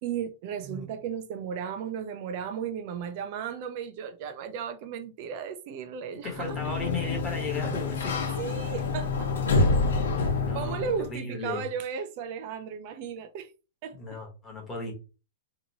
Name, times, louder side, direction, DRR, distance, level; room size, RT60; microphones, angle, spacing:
voice 1, 0.0-7.4 8.4-9.5 10.2-13.5 13.8-14.2, right 7 dB, 40° right, 0.5 m, -35 dB
voice 2, 6.2-8.2 10.4-10.8 11.1-11.6 13.9-14.9, left 3 dB, 10° left, 1.1 m, -35 dB
Sliding door, 6.3-11.1, left 3 dB, 90° left, 1.1 m, -27 dB
3.0 x 2.6 x 3.9 m
supercardioid pair, 170°, 0 cm